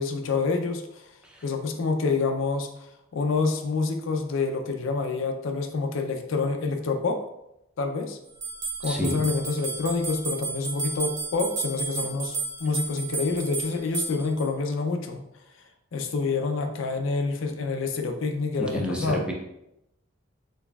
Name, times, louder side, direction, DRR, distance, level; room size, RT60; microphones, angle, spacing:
voice 1, 0.0-1.1 1.4-7.2 7.8-8.2 8.8-15.2 15.9-19.3, left 4 dB, 75° left, 5 dB, 0.4 m, -27 dB
sound 1, 8.4-14.5, right 4 dB, 60° right, 0.9 m, -32 dB
voice 2, 8.8-9.2 18.6-19.3, equal, 5° right, 0 dB, 0.5 m, -30 dB
4.0 x 3.2 x 2.3 m, 0.84 s
head